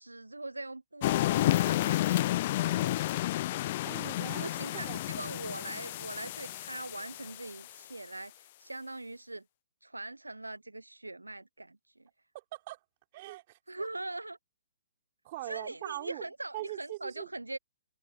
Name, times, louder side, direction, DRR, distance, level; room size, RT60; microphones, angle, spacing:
voice 1, 0.0-3.0 4.4-9.4 9.8-12.1 13.7-14.4 15.4-17.6, right 2 dB, 85° right, 1.0 m, -42 dB
sound 1, 1.0-7.7, left 15 dB, 40° left, 0.4 m, -31 dB
voice 2, 3.8-5.0 12.3-12.8 13.1-13.9 15.2-16.3 16.5-17.3, right 17 dB, 40° right, 4.6 m, -42 dB
figure-of-eight pair, 125°, 0 cm